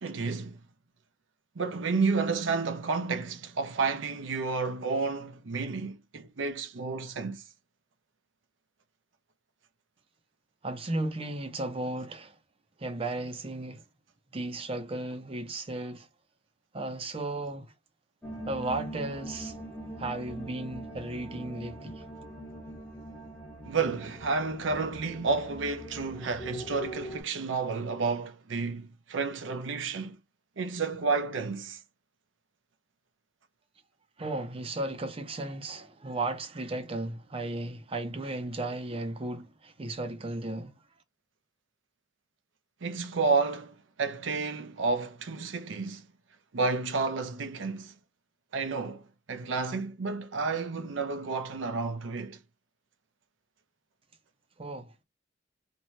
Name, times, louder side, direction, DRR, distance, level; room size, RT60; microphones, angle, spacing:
voice 1, 0.0-0.6 1.6-7.4 23.7-30.2 30.6-31.8 42.8-46.1 46.5-47.9 48.5-49.0 49.3-52.4, right 4 dB, 75° right, 0.6 m, -31 dB
voice 2, 10.6-12.4 12.8-13.8 14.3-16.1 16.7-17.7 18.5-19.6 20.0-22.0 34.2-40.7 54.6-55.0, right 2 dB, 30° right, 0.6 m, -35 dB
sound 1, 18.2-27.2, right 1 dB, 5° left, 0.7 m, -42 dB
2.6 x 2.2 x 3.0 m
head